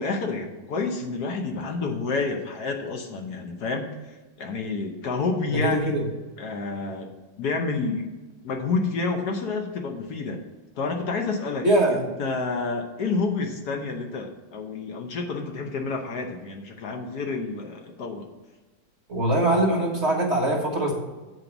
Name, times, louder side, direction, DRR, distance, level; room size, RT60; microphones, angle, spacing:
voice 1, 0.0-3.9 4.4-5.9 6.4-7.1 7.4-8.1 8.4-10.4 10.8-18.3, left 4 dB, 65° left, 3 dB, 1.4 m, -29 dB
voice 2, 5.5-6.1 11.6-12.0 19.1-20.9, right 1 dB, 40° right, 0 dB, 1.4 m, -22 dB
7.9 x 4.6 x 7.0 m, 1.2 s
omnidirectional pair, 2.0 m